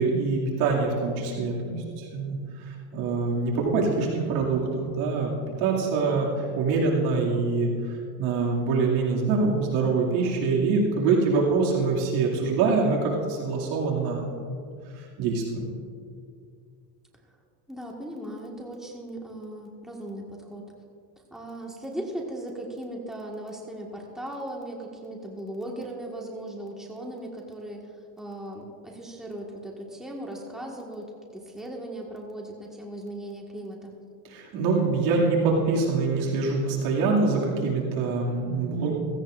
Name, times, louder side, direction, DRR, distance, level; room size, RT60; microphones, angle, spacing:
voice 1, 0.0-5.3 5.6-14.7 14.9-15.7 34.3-38.9, right 4 dB, 80° right, -3 dB, 2.6 m, -25 dB
voice 2, 17.7-20.6 21.3-34.0, right 1 dB, ahead, -1 dB, 1.7 m, -38 dB
16.5 x 16.5 x 2.6 m, 2.3 s
supercardioid pair, 110°, 49 cm